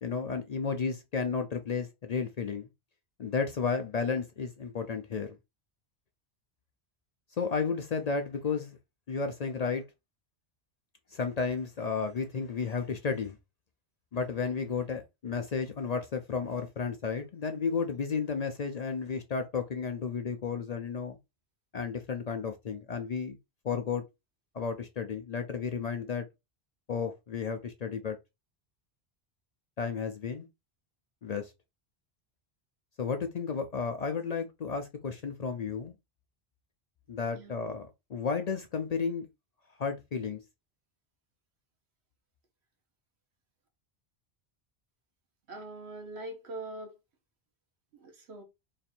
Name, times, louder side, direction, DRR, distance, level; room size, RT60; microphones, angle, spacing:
voice 1, 0.0-2.7 3.2-5.4 7.4-8.8 9.1-9.8 11.1-13.4 14.1-21.2 21.7-23.4 23.6-24.0 24.5-26.3 26.9-28.2 29.8-30.5 31.2-31.5 33.0-35.9 37.1-39.3 39.8-40.4, left 5 dB, 50° left, 0.5 m, -33 dB
voice 2, 45.5-46.9 47.9-48.4, right 2 dB, 85° right, 1.4 m, -42 dB
3.2 x 2.6 x 4.2 m
omnidirectional pair, 1.1 m